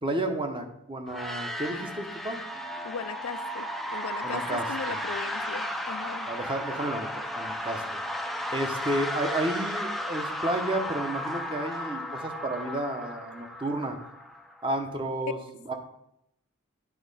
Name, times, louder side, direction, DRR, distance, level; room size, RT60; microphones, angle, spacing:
voice 1, 0.0-2.4 4.2-5.0 6.3-7.8 8.5-14.0 14.6-15.4 15.7-15.8, right 1 dB, 25° right, 5 dB, 0.8 m, -31 dB
sound 1, 1.1-14.8, equal, ahead, 0.4 m, -34 dB
voice 2, 2.8-6.3, left 6 dB, 90° left, 12 dB, 0.5 m, -38 dB
9.4 x 3.6 x 5.4 m, 0.80 s
head